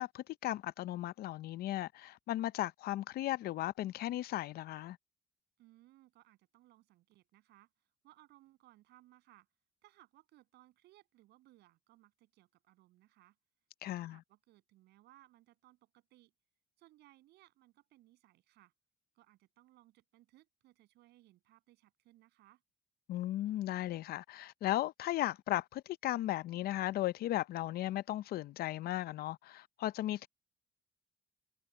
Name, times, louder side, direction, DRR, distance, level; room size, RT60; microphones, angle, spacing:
voice 1, 0.0-5.0 13.8-14.2 23.1-30.3, left 14 dB, 65° left, 0.6 m, -36 dB
voice 2, 5.6-7.7 8.0-9.5 9.8-13.4 13.8-16.3 16.8-18.7 19.2-22.6, right 16 dB, 80° right, 7.9 m, -64 dB
cardioid pair, 110°, 17 cm